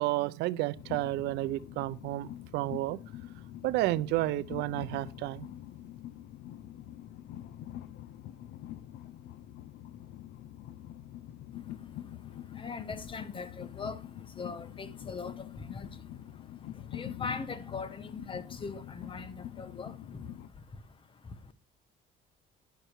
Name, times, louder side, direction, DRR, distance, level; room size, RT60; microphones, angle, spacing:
voice 1, 0.0-3.0 3.6-5.5, right 18 dB, 85° right, 0.5 m, -31 dB
Train, 0.8-20.5, left 12 dB, 80° left, 0.7 m, -45 dB
voice 2, 11.5-21.5, left 4 dB, 30° left, 1.0 m, -42 dB
10.0 x 6.6 x 4.6 m
cardioid pair, 110°, 17 cm